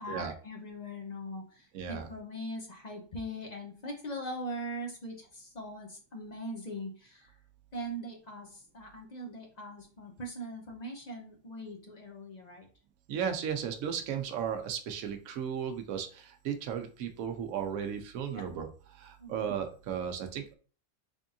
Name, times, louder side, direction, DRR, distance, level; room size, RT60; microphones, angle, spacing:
voice 1, 0.0-7.3 7.7-12.7 18.3-18.5 19.2-19.5, equal, 45° left, 2 dB, 0.5 m, -41 dB
voice 2, 1.7-2.1 13.1-20.5, right 8 dB, 75° right, 6 dB, 1.0 m, -35 dB
3.5 x 3.5 x 2.6 m, 0.39 s
omnidirectional pair, 1.5 m